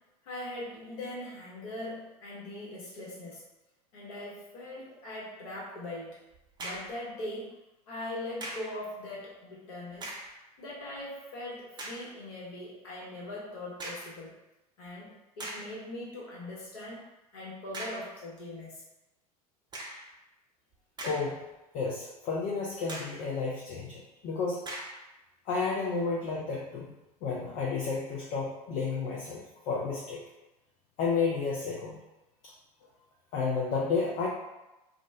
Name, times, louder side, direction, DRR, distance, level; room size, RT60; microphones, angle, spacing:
voice 1, 0.2-3.4 3.9-6.2 6.6-7.5 7.9-10.1 10.6-14.3 14.8-18.8, left 1 dB, 65° left, -5 dB, 1.1 m, -41 dB
sound 1, 6.3-7.0 8.4-8.8 9.9-10.4 11.0-11.1 11.8-12.1 13.8-14.2 14.9-15.0 15.4-15.8 17.7-18.1 19.7-20.1 20.7-21.5 21.9-22.0 22.9-23.3 24.6-25.0, right 1 dB, 20° right, 0.7 m, -40 dB
voice 2, 21.0-21.4 21.7-24.6 25.5-26.9 27.2-30.2 31.0-32.0 33.3-34.3, left 4 dB, 40° left, -4 dB, 0.5 m, -31 dB
2.3 x 2.1 x 3.4 m, 1.0 s
figure-of-eight pair, 80°, 20 cm